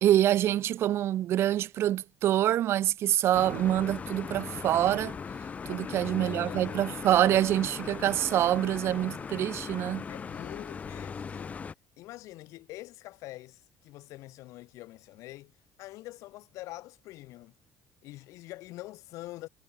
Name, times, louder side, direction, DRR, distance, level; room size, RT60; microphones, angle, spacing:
voice 1, 0.0-5.2 5.7-10.0, right 12 dB, 50° right, 0.5 m, -26 dB
sound 1, 3.3-11.7, left 6 dB, 25° left, 1.7 m, -39 dB
voice 2, 5.7-6.7 10.1-11.6 12.0-15.5 15.8-17.5 18.0-19.5, left 17 dB, 70° left, 3.0 m, -45 dB
cardioid pair, 145°, 6 cm